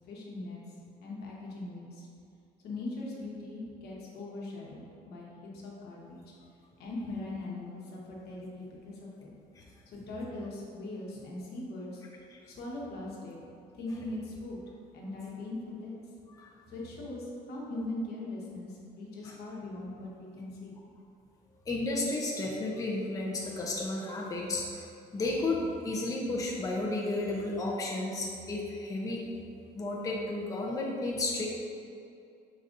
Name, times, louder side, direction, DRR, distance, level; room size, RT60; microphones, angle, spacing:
voice 1, 0.1-0.6 1.0-2.1 2.6-6.3 6.8-9.3 9.9-12.0 12.5-13.4 13.7-14.6 14.9-16.0 16.7-20.8, left 2 dB, 70° left, -3 dB, 1.0 m, -40 dB
voice 2, 21.7-24.9 25.1-29.2 29.7-31.6, left 2 dB, 20° left, -3 dB, 0.6 m, -33 dB
5.0 x 4.1 x 2.5 m, 2.5 s
cardioid pair, 110°, 17 cm